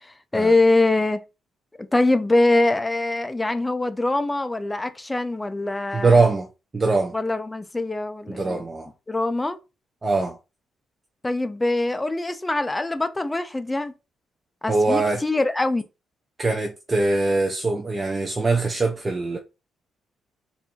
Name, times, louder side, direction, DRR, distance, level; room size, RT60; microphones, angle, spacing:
voice 1, 0.3-1.2 1.9-6.3 7.1-8.6 9.1-9.6 11.2-13.9 14.6-15.8, left 2 dB, 15° left, 0.5 m, -23 dB
voice 2, 5.9-6.5 6.7-7.1 8.3-8.9 10.0-10.4 14.7-15.2 16.4-19.4, right 3 dB, 25° right, 0.6 m, -22 dB
3.4 x 2.7 x 4.4 m
cardioid pair, 90°, 0 cm